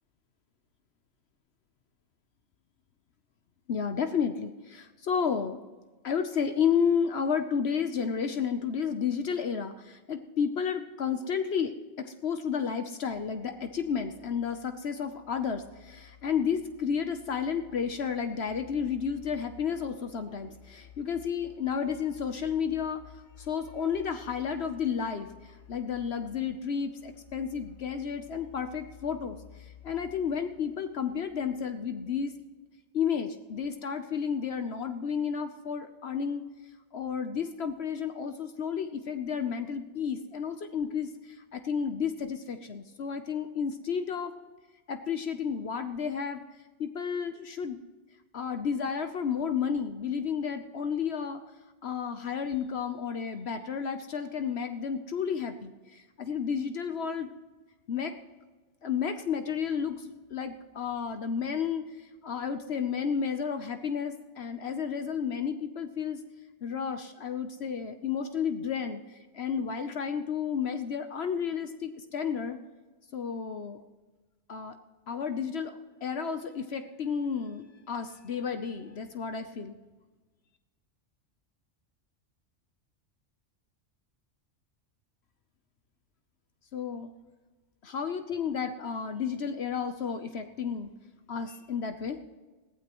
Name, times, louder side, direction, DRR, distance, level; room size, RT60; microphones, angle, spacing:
voice 1, 3.7-5.6 6.0-23.0 23.4-25.3 25.7-32.3 32.9-36.4 36.9-44.3 44.9-46.4 46.8-47.8 48.3-51.4 51.8-57.3 57.9-58.1 58.8-66.2 66.6-72.6 73.1-73.8 74.5-74.8 75.1-79.8 86.7-87.1 87.8-90.9 91.3-92.2, left 7 dB, 60° left, 7 dB, 1.0 m, -32 dB
sound 1, 13.0-31.2, left 9 dB, 40° left, 2.3 m, -54 dB
21.0 x 15.5 x 3.1 m, 1.3 s
omnidirectional pair, 1.2 m